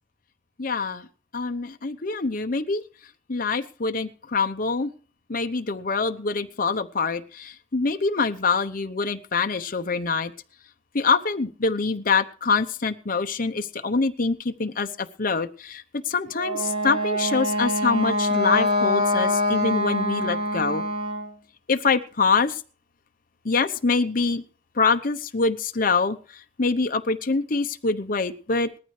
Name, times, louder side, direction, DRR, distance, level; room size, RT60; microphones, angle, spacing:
voice 1, 0.6-1.1 1.3-2.8 3.3-4.9 5.3-10.3 10.9-20.8 21.7-22.6 23.4-24.4 24.8-26.2 26.6-28.7, left 4 dB, 50° left, 8 dB, 0.9 m, -25 dB
Wind instrument woodwind instrument, 16.3-21.3, left 1 dB, 35° right, 4.0 m, -24 dB
19.0 x 14.0 x 3.3 m, 0.40 s
head